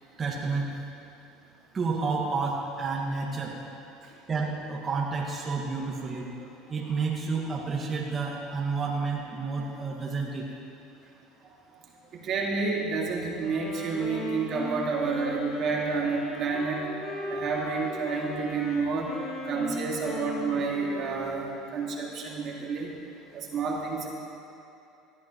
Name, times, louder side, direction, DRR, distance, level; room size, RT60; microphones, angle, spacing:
voice 1, 0.2-1.0 1.7-3.6 4.3-10.5 11.4-11.8, right 4 dB, 30° right, -3 dB, 1.7 m, -31 dB
voice 2, 12.2-16.8 17.3-19.1 19.5-22.9 23.3-24.1, right 4 dB, 50° right, -2 dB, 2.0 m, -29 dB
Wind instrument woodwind instrument, 13.4-21.6, left 2 dB, 40° left, 2.8 m, -38 dB
18.5 x 12.0 x 3.0 m, 2.7 s
supercardioid pair, 105°, 0 cm